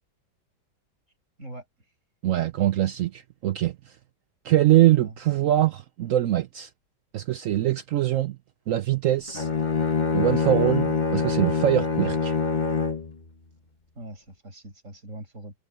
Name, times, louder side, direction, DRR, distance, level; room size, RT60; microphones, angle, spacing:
voice 1, 2.2-3.8 4.4-6.7 7.1-8.4 8.7-9.5 10.1-12.3, right 13 dB, 90° right, 0.7 m, -23 dB
Bowed string instrument, 9.3-13.1, left 4 dB, 30° left, 1.2 m, -25 dB
voice 2, 13.9-15.5, right 1 dB, 40° right, 8.5 m, -42 dB
omnidirectional pair, 2.0 m